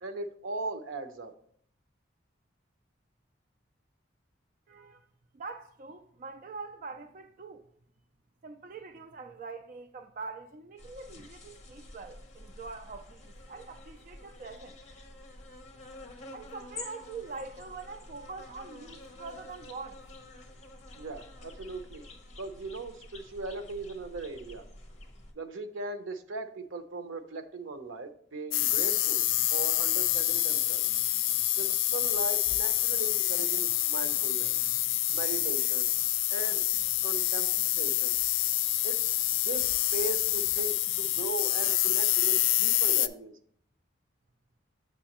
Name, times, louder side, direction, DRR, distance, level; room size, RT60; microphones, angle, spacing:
voice 1, 0.0-1.3 21.0-22.0 22.4-24.6 25.4-30.9 31.6-34.5 35.1-35.9 36.3-36.6 37.0-38.2 38.8-39.0 39.4-43.4, right 3 dB, 85° right, 0.7 m, -38 dB
voice 2, 4.7-5.1 5.3-7.6 8.4-14.8 16.3-20.0, right 4 dB, 45° right, 0.3 m, -44 dB
sound 1, 10.8-25.3, left 2 dB, 35° left, 0.9 m, -49 dB
sound 2, 28.5-43.1, left 14 dB, 80° left, 0.3 m, -27 dB
7.1 x 6.1 x 2.9 m
head